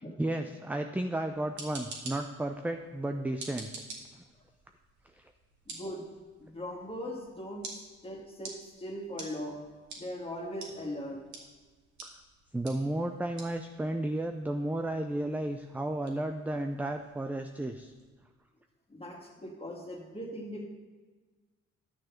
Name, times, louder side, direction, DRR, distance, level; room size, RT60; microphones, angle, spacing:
voice 1, 0.2-3.7 4.1-4.2 5.1-5.2 12.0-12.2 12.5-17.9, right 1 dB, 5° right, 6 dB, 0.5 m, -33 dB
sound 1, 1.3-18.1, right 3 dB, 70° right, 2.2 m, -50 dB
voice 2, 5.7-6.0 6.4-9.6 10.0-11.2 18.9-20.6, equal, 20° left, -1 dB, 2.3 m, -40 dB
11.0 x 6.4 x 5.7 m, 1.4 s
cardioid pair, 90°, 30 cm